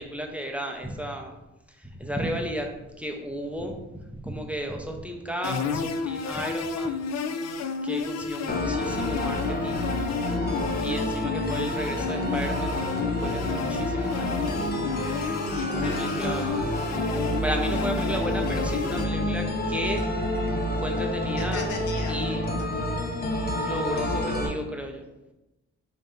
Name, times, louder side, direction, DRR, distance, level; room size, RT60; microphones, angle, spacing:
voice 1, 0.0-1.3 1.8-7.0 7.8-9.9 10.5-14.7 15.7-16.8 17.4-20.1 20.8-21.7 22.1-22.5 23.6-25.3, equal, 5° right, 3 dB, 0.5 m, -34 dB
sound 1, 5.4-19.1, left 5 dB, 60° left, 0.5 m, -32 dB
sound 2, 8.5-24.5, left 1 dB, 30° left, 0.8 m, -28 dB
voice 2, 15.5-16.3 21.4-23.0, left 3 dB, 80° left, 1 dB, 1.0 m, -38 dB
5.4 x 2.6 x 3.6 m, 0.98 s
cardioid pair, 90°, 30 cm